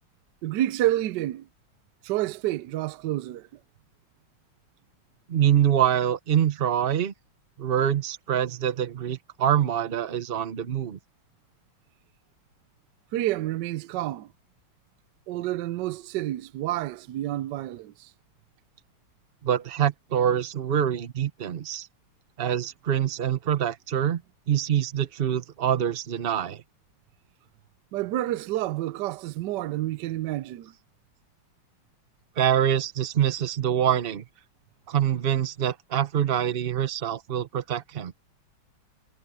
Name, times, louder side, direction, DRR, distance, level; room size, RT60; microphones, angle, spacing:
voice 1, 0.4-1.5 2.0-3.5 13.1-14.3 15.3-18.1 27.9-30.7, right 14 dB, 75° right, 1.0 m, -29 dB
voice 2, 5.3-7.1 7.6-11.0 19.4-21.9 22.4-24.2 24.5-26.6 32.4-34.2 34.9-38.1, right 10 dB, 90° right, 0.5 m, -25 dB
omnidirectional pair, 2.4 m